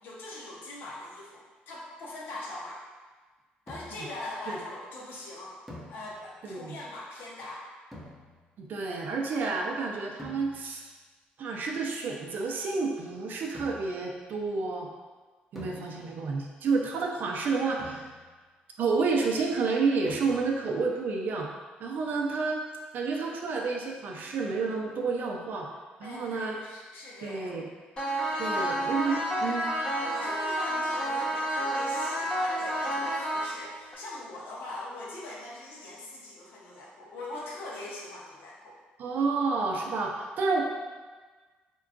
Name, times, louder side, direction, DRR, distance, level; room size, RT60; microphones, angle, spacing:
voice 1, 0.0-2.8 3.7-5.6 5.9-7.6 15.7-16.0 26.0-27.5 28.4-28.5 29.1-29.2 30.0-38.7, left 2 dB, 75° left, -4 dB, 0.7 m, -42 dB
sound 1, 3.7-4.2 5.7-6.5 7.9-8.7 10.2-10.9 13.5-14.1 15.6-16.4 17.8-18.6 20.1-20.8, left 1 dB, ahead, 0.7 m, -47 dB
voice 2, 6.4-6.8 8.6-10.9 11.4-14.9 15.5-18.0 18.8-21.5 21.8-22.6 22.9-25.7 26.0-26.6 27.2-27.6 28.4-29.7 39.0-40.6, right 4 dB, 60° right, 0 dB, 0.5 m, -30 dB
sound 2, 28.0-34.0, right 1 dB, 30° left, 0.8 m, -30 dB
3.6 x 2.3 x 2.4 m, 1.4 s
cardioid pair, 80°, 4 cm